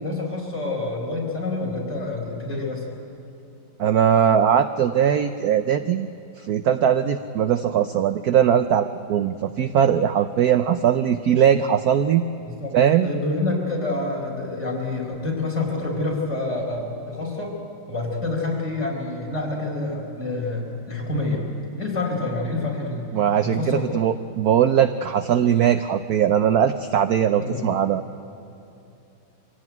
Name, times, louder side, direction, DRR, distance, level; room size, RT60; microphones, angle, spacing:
voice 1, 0.0-2.9 12.5-12.8 13.0-17.6 17.9-21.4 21.8-23.1 23.4-23.9 27.4-27.6, left 2 dB, 35° left, -1 dB, 4.8 m, -27 dB
voice 2, 3.8-6.1 6.4-12.2 12.7-13.1 23.1-28.0, right 9 dB, 70° right, 10 dB, 0.9 m, -20 dB
24.5 x 16.5 x 9.2 m, 2.7 s
omnidirectional pair, 2.3 m